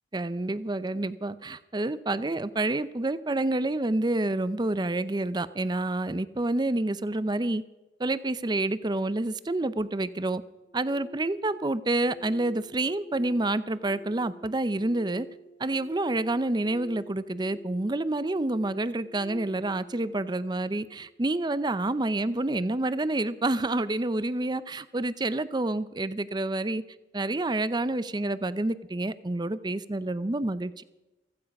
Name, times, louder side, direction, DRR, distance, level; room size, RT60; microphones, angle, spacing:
voice 1, 0.1-7.6 8.0-10.4 10.7-15.3 15.6-26.8 27.1-30.8, right 2 dB, 25° right, 15 dB, 0.6 m, -28 dB
sound 1, 10.6-21.7, right 1 dB, 45° left, 1.5 m, -48 dB
15.5 x 15.0 x 5.3 m, 1.0 s
head